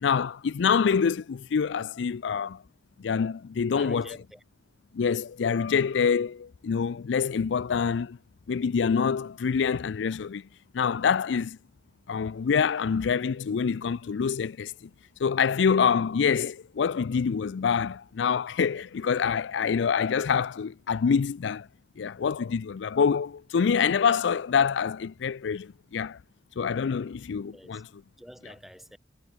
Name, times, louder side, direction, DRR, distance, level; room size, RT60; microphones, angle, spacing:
voice 1, 0.0-2.6 3.0-4.2 4.9-8.2 8.5-10.4 10.7-11.6 12.1-14.9 15.2-21.7 22.0-26.2 26.6-27.9, left 6 dB, 80° left, 0.4 m, -26 dB
voice 2, 3.6-4.4 27.5-27.8 28.2-29.0, equal, ahead, 4.1 m, -47 dB
head